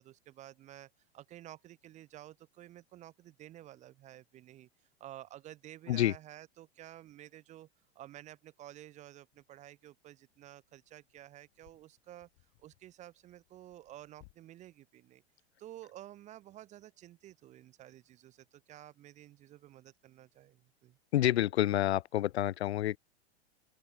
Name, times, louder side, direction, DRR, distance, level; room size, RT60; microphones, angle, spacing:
voice 1, 0.0-4.7 5.0-7.7 7.9-12.3 12.6-15.2 15.6-21.0, right 13 dB, 20° right, 0.5 m, -52 dB
sound 1, 8.4-8.5 9.3-9.5 10.2-14.4, left 27 dB, 50° left, 2.5 m, -66 dB
voice 2, 21.1-23.0, left 13 dB, 80° left, 0.6 m, -28 dB
open air
hypercardioid pair, 115°, 32 cm